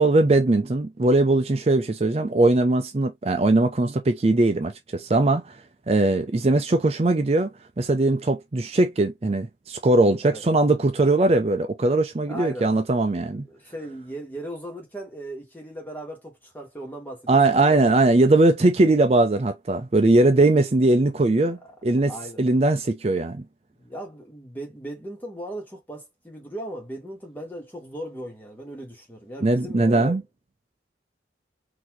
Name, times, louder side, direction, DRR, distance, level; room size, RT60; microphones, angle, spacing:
voice 1, 0.0-5.6 5.9-7.5 7.8-13.5 17.3-23.4 29.4-30.2, right 2 dB, 35° right, 0.4 m, -20 dB
voice 2, 12.3-12.7 13.4-17.9 21.5-21.7 22.1-22.4 23.8-30.2, right 1 dB, 10° left, 1.4 m, -37 dB
4.0 x 2.7 x 3.0 m
head